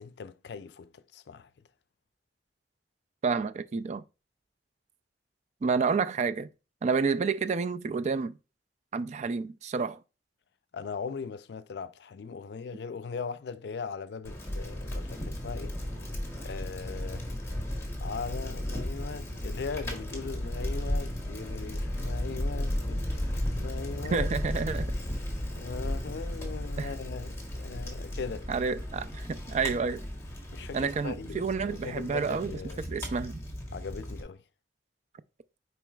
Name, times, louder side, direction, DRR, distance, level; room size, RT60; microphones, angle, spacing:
voice 1, 0.0-1.5 10.7-15.8 16.4-17.3 18.0-24.3 24.6-24.8 25.6-28.5 30.5-32.8 33.7-34.4, left 5 dB, 65° left, 0.4 m, -39 dB
voice 2, 3.2-4.0 5.6-6.5 6.8-8.4 8.9-10.0 24.1-24.9 26.8-26.9 28.5-30.0 30.7-33.4, right 5 dB, 40° right, 0.3 m, -29 dB
Bicycle, 14.2-34.2, left 1 dB, 15° left, 1.6 m, -35 dB
9.0 x 4.5 x 2.3 m
head